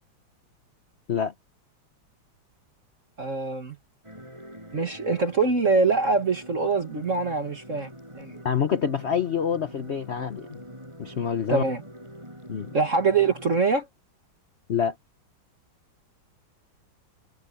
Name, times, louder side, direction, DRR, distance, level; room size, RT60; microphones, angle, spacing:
voice 1, 3.2-3.8 4.7-8.4 11.5-11.8 12.7-13.9, right 4 dB, 40° right, 2.1 m, -24 dB
sound 1, 4.0-13.6, equal, 15° right, 7.9 m, -45 dB
voice 2, 8.4-10.6 11.0-11.6 12.5-12.7 14.7-15.0, left 7 dB, 50° left, 0.8 m, -26 dB
omnidirectional pair, 2.3 m